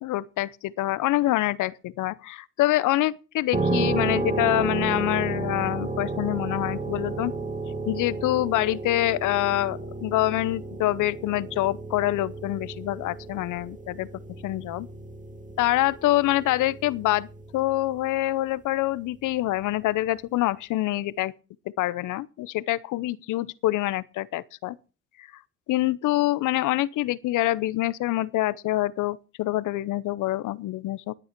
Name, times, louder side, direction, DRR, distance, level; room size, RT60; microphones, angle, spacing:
voice 1, 0.0-7.3 7.9-14.1 14.4-14.9 15.6-21.3 21.8-24.8 25.2-25.3 25.7-31.1, left 16 dB, 85° left, 0.8 m, -26 dB
sound 1, 3.5-18.2, right 3 dB, 25° right, 1.8 m, -32 dB
19.5 x 8.6 x 4.5 m
cardioid pair, 90°, 30 cm